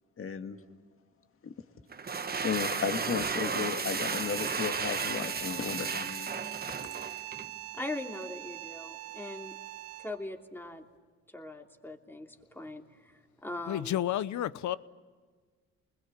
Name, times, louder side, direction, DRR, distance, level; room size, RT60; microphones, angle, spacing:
voice 1, 0.2-0.6 1.4-1.5 2.4-6.3, left 6 dB, 45° left, 2.1 m, -34 dB
sound 1, 1.9-7.5, right 5 dB, 30° right, 1.3 m, -34 dB
sound 2, 4.1-10.3, right 16 dB, 90° right, 1.3 m, -42 dB
voice 2, 7.7-9.5 10.0-10.8 11.3-13.1 13.4-14.0, left 2 dB, 5° left, 2.9 m, -40 dB
voice 3, 13.7-14.8, left 12 dB, 70° left, 1.0 m, -31 dB
29.5 x 21.5 x 8.8 m
cardioid pair, 90°, 30 cm